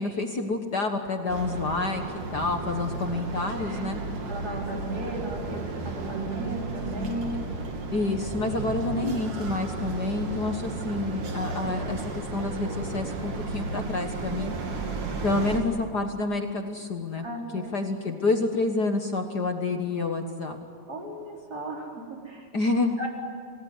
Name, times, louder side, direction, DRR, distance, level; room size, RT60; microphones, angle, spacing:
voice 1, 0.0-2.0 2.3-4.0 7.9-14.8 15.2-17.2 17.5-20.6 22.5-23.0, left 3 dB, 45° left, 5 dB, 1.3 m, -28 dB
sound 1, 1.3-15.6, right 3 dB, 90° right, 4.3 m, -33 dB
voice 2, 4.3-7.4 17.2-17.7 20.9-22.5 23.0-23.1, right 1 dB, 30° right, -1 dB, 4.8 m, -35 dB
28.5 x 19.0 x 9.8 m, 2.1 s
omnidirectional pair, 3.6 m